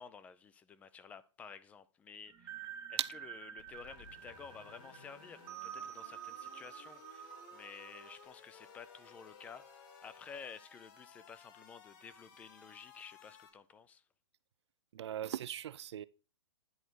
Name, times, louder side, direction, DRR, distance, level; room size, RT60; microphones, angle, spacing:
voice 1, 0.0-14.0, left 6 dB, 10° left, 0.3 m, -52 dB
sound 1, 2.3-8.3, right 10 dB, 15° right, 0.8 m, -49 dB
sound 2, 3.6-13.5, left 6 dB, 45° left, 1.8 m, -59 dB
sound 3, 3.9-5.6 7.3-10.3, left 4 dB, 75° left, 2.1 m, -62 dB
voice 2, 14.9-16.0, right 11 dB, 65° right, 0.5 m, -38 dB
10.0 x 3.8 x 4.5 m
hypercardioid pair, 145°, 15 cm